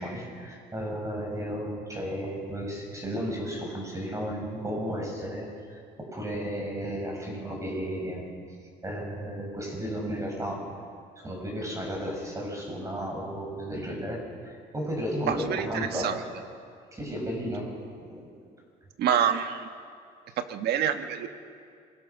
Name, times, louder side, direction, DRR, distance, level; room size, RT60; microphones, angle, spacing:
voice 1, 0.0-8.2 8.8-10.6 11.2-16.2 16.9-17.7 18.0-18.3, equal, 20° right, 0 dB, 6.8 m, -34 dB
voice 2, 15.3-16.1 19.0-19.7 20.5-21.3, right 9 dB, 75° right, 7 dB, 1.6 m, -27 dB
26.0 x 21.0 x 6.1 m, 2.3 s
cardioid pair, 110°, 17 cm